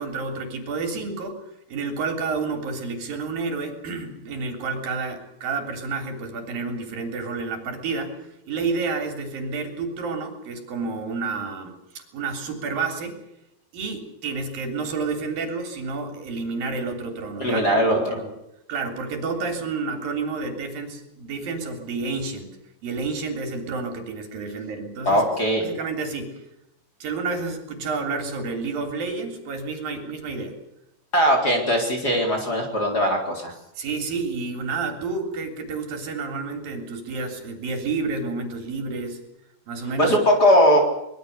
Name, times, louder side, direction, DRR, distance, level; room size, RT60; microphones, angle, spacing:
voice 1, 0.0-1.4 1.7-8.2 8.5-13.2 13.7-18.3 18.7-22.6 22.8-25.3 25.6-26.4 27.0-30.5 33.8-39.2 39.7-40.2, right 4 dB, 70° right, 5 dB, 5.0 m, -30 dB
voice 2, 17.4-18.2 25.0-25.6 31.1-33.5 40.0-40.8, equal, 25° left, 2 dB, 4.2 m, -20 dB
24.0 x 21.5 x 6.7 m, 0.84 s
omnidirectional pair, 4.3 m